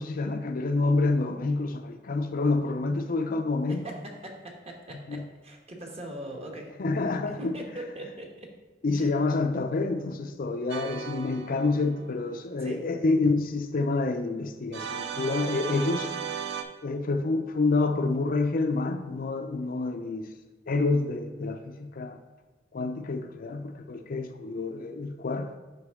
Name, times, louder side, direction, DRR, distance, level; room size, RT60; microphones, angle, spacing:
voice 1, 0.0-3.8 5.1-5.3 6.8-7.6 8.8-16.1 16.8-20.3 20.7-22.2 22.7-25.6, left 3 dB, 50° left, 7 dB, 0.5 m, -28 dB
voice 2, 3.7-6.7 7.3-8.5 8.9-9.1 12.6-12.8, right 1 dB, 35° right, 1 dB, 1.2 m, -41 dB
sound 1, 10.7-12.2 14.7-16.6, right 7 dB, 65° right, 0.6 m, -36 dB
8.1 x 5.2 x 3.6 m, 1.2 s
head